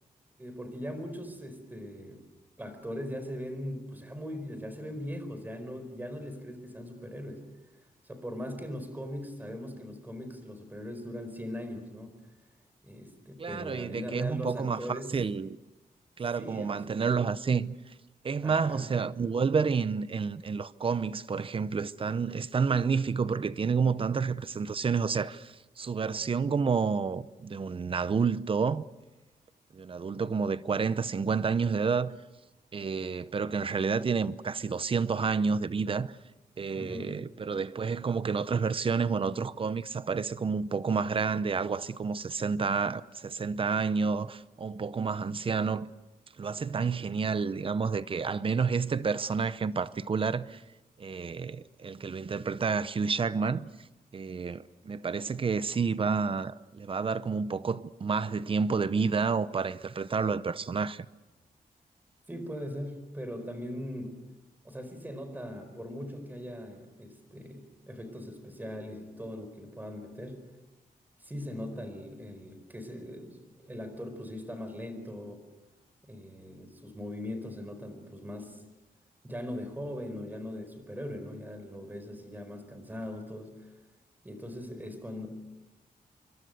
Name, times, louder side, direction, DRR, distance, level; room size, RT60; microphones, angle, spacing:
voice 1, 0.4-2.2 2.6-7.4 8.0-12.1 12.8-15.1 16.2-16.9 18.4-18.9 36.8-37.2 62.3-64.1 64.6-70.4 71.2-75.4 76.1-78.6 79.2-83.7 84.2-85.3, equal, 10° right, 4.6 m, -40 dB
voice 2, 13.4-15.6 16.2-17.7 18.2-28.8 29.7-32.2 32.7-36.2 36.6-45.9 46.4-50.6 51.0-53.7 54.1-61.1, right 5 dB, 35° right, 0.7 m, -29 dB
27.0 x 24.0 x 6.7 m
wide cardioid pair, 170°, 16 cm